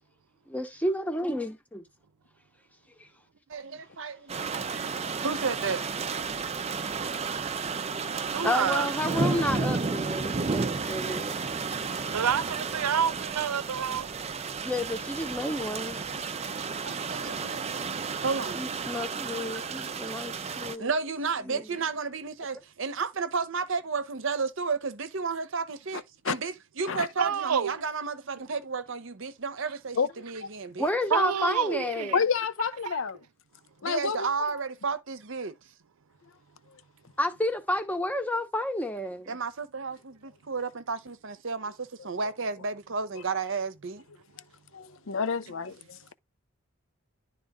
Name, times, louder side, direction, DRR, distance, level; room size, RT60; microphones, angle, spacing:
voice 1, 0.5-1.8 3.0-3.1 8.4-11.7 14.6-16.1 18.5-20.9 21.4-21.7 30.8-32.1 37.2-39.4, left 1 dB, 5° left, 0.9 m, -31 dB
voice 2, 3.5-5.9 16.8-18.6 19.8-20.1 20.4-30.0 30.2-30.9 33.8-35.5 39.3-44.0, right 4 dB, 60° right, 0.8 m, -33 dB
sound 1, 4.3-20.7, right 4 dB, 30° right, 0.5 m, -32 dB
voice 3, 8.3-8.9 12.1-14.1 27.2-27.7 31.1-32.2 32.9-33.0, right 7 dB, 90° right, 0.6 m, -28 dB
voice 4, 32.1-33.2 33.8-34.3 44.7-45.7, left 6 dB, 60° left, 0.6 m, -29 dB
11.0 x 3.7 x 3.6 m
head